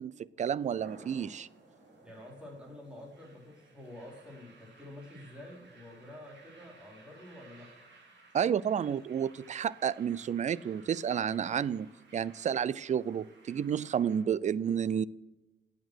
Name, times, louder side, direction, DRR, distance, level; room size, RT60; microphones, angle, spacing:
voice 1, 0.0-1.5 8.3-15.0, right 8 dB, 40° right, 21 dB, 0.4 m, -31 dB
sound 1, 0.6-14.2, right 3 dB, 70° right, 3.6 m, -58 dB
voice 2, 2.0-7.7, left 1 dB, 5° right, -2 dB, 4.0 m, -48 dB
9.2 x 8.2 x 6.3 m, 1.1 s
cardioid pair, 115°, 19 cm